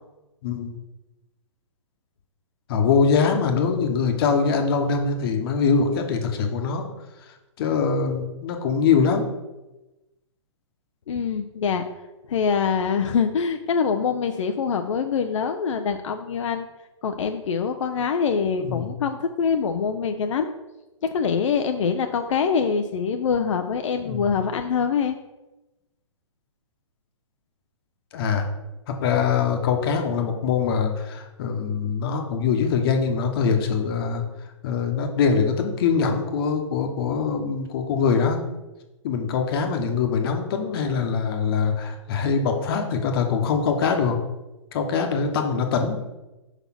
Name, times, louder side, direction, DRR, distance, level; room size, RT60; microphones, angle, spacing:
voice 1, 0.4-0.7 2.7-6.9 7.6-9.3 18.6-18.9 24.0-24.3 28.1-28.5 28.9-34.2 34.6-38.4 39.0-44.2 44.7-46.0, left 5 dB, 45° left, 4 dB, 1.1 m, -23 dB
voice 2, 11.1-11.9 12.3-16.7 17.0-20.5 21.1-25.2, left 6 dB, 65° left, 6 dB, 0.5 m, -24 dB
5.6 x 4.0 x 5.8 m, 1.0 s
hypercardioid pair, 130°, 17 cm